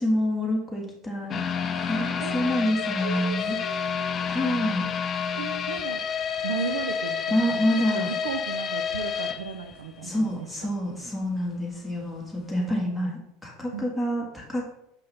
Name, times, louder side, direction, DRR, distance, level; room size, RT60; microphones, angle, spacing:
voice 1, 0.0-1.4 1.9-3.6 4.3-4.9 7.3-8.1 10.0-14.7, equal, ahead, -2 dB, 1.8 m, -27 dB
sound 1, 1.3-10.3 10.6-10.7 11.2-11.3, left 7 dB, 35° left, 0.5 m, -30 dB
voice 2, 1.6-4.3 5.4-6.0 6.4-10.7 13.7-13.9, right 6 dB, 90° right, 7 dB, 0.5 m, -36 dB
5.5 x 5.5 x 3.4 m, 0.81 s
hypercardioid pair, 90°, 0 cm